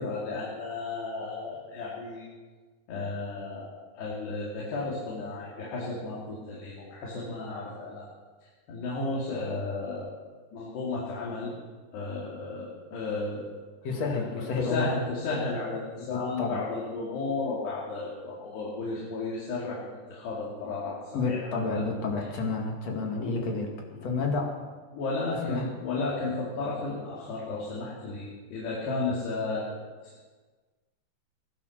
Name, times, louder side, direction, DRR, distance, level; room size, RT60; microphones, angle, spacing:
voice 1, 0.0-2.3 2.9-8.1 8.4-10.1 10.5-11.5 11.9-13.5 14.0-21.8 23.2-23.6 24.0-24.3 24.9-29.7 30.0-30.1, left 3 dB, 70° left, -5 dB, 4.6 m, -33 dB
voice 2, 13.8-14.9 16.1-16.6 21.1-23.7 24.0-24.6 25.4-25.7, left 4 dB, 45° left, 1 dB, 2.5 m, -30 dB
19.0 x 11.0 x 6.6 m, 1.4 s
omnidirectional pair, 5.2 m